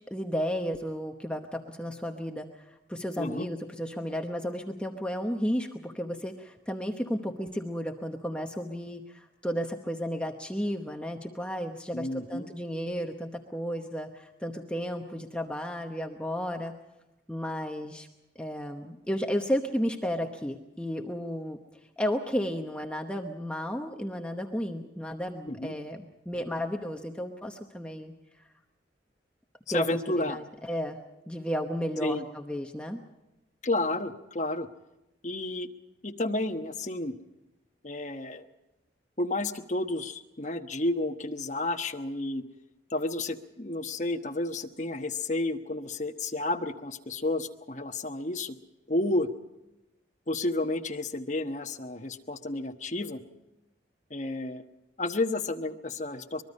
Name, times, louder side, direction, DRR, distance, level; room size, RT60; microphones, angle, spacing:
voice 1, 0.1-16.7 17.3-18.1 18.3-21.6 22.0-28.1 29.7-31.0 31.3-33.0, equal, 5° left, 3 dB, 0.9 m, -33 dB
voice 2, 3.2-3.5 11.9-12.5 25.5-25.7 29.7-30.4 32.0-32.2 33.6-34.7 35.2-35.7 36.0-37.1 37.8-38.4 39.2-42.4 42.9-48.5 48.9-49.3 50.3-53.2 54.1-54.6 55.0-56.4, left 2 dB, 40° left, 5 dB, 1.1 m, -31 dB
23.5 x 21.5 x 5.4 m, 0.97 s
head